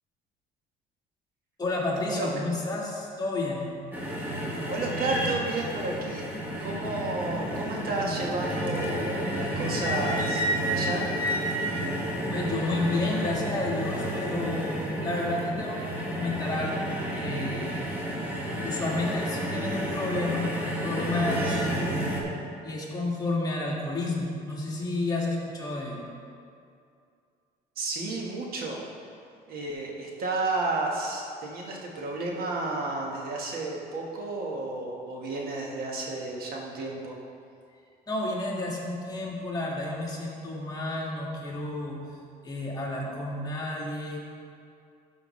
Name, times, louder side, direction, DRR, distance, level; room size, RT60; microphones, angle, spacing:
voice 1, 1.6-3.7 12.3-16.9 17.1-17.8 18.6-21.9 22.6-26.1 38.1-42.2 42.4-44.2, left 2 dB, 20° left, -4 dB, 1.8 m, -31 dB
sound 1, 3.9-22.2, right 1 dB, 10° right, 1.5 m, -31 dB
voice 2, 4.7-6.2 6.6-11.1 27.8-28.8 29.5-37.2, right 2 dB, 60° right, -1 dB, 1.3 m, -32 dB
12.5 x 5.7 x 3.1 m, 2.4 s
cardioid pair, 110°, 17 cm